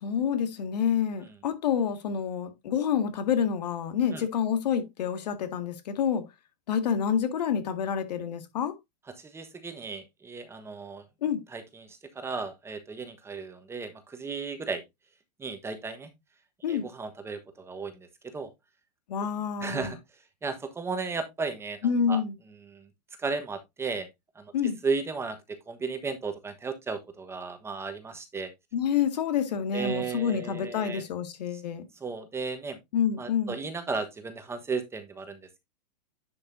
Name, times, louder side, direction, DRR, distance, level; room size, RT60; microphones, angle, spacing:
voice 1, 0.0-6.2 6.7-8.7 11.2-11.4 16.6-16.8 19.1-19.9 21.8-22.3 24.5-24.8 28.7-31.8 32.9-33.6, left 7 dB, 75° left, 1.9 m, -28 dB
voice 2, 9.2-11.0 11.5-14.8 15.4-16.1 16.7-18.1 18.3-18.5 19.6-20.0 20.4-21.8 22.1-22.2 22.7-22.9 23.2-24.1 24.3-24.5 24.8-25.4 25.7-28.5 29.7-31.0 32.0-32.8 33.2-35.6, right 4 dB, 10° right, 1.2 m, -34 dB
10.5 x 5.5 x 2.6 m
hypercardioid pair, 135°, 21 cm